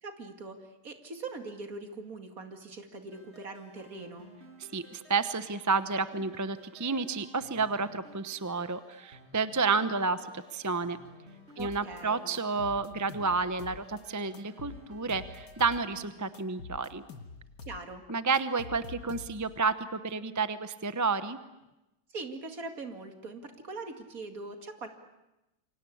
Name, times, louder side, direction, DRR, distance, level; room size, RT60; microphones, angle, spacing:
voice 1, 0.0-4.3 11.6-12.3 17.7-18.0 22.1-24.9, right 3 dB, 55° right, 6 dB, 2.7 m, -42 dB
sound 1, 3.1-16.4, equal, 35° right, 5.7 m, -55 dB
voice 2, 4.7-11.0 11.6-17.0 18.1-21.4, right 4 dB, 15° right, 12 dB, 0.6 m, -30 dB
sound 2, 11.6-12.0 12.3-14.0 14.3-16.0 16.3-17.8 18.1-19.6, left 4 dB, 70° left, 2.1 m, -46 dB
28.0 x 24.5 x 8.6 m, 0.95 s
omnidirectional pair, 1.9 m